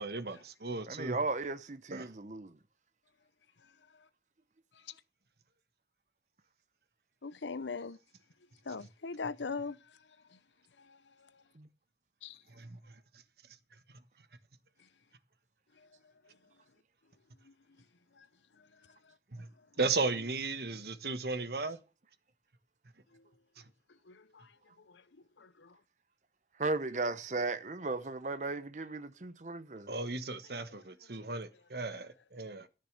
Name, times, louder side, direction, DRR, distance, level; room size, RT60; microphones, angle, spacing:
voice 1, 0.0-1.2 1.9-2.1 12.6-12.7 19.3-19.5 19.8-21.8 29.9-32.7, right 3 dB, 60° right, 1.3 m, -35 dB
voice 2, 0.9-2.5 11.6-11.7 26.6-29.9, right 3 dB, 40° right, 0.8 m, -36 dB
voice 3, 3.6-4.1 4.7-5.0 7.2-8.0 8.6-10.0 10.3-10.4 10.8-11.4 12.2-12.4 14.8-14.9 15.8-15.9 17.4-17.5 18.1-18.3 18.5-19.1 23.1-23.3 24.0-25.8 30.7-30.8 31.1-31.2 31.9-32.0, left 4 dB, 90° left, 0.8 m, -43 dB
13.5 x 6.7 x 6.7 m
head